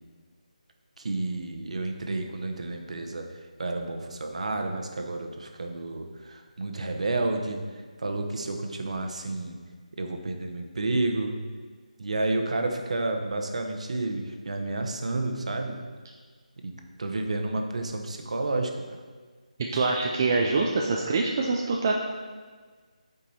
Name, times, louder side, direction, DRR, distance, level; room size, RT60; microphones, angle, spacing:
voice 1, 1.0-7.6 8.0-9.6 9.9-11.3 12.0-15.8 16.6-16.7 17.0-19.0, right 2 dB, 55° right, 4 dB, 1.0 m, -30 dB
voice 2, 19.7-22.0, right 3 dB, 25° right, 0 dB, 0.5 m, -25 dB
8.7 x 5.2 x 4.2 m, 1.5 s
figure-of-eight pair, 170°, 4 cm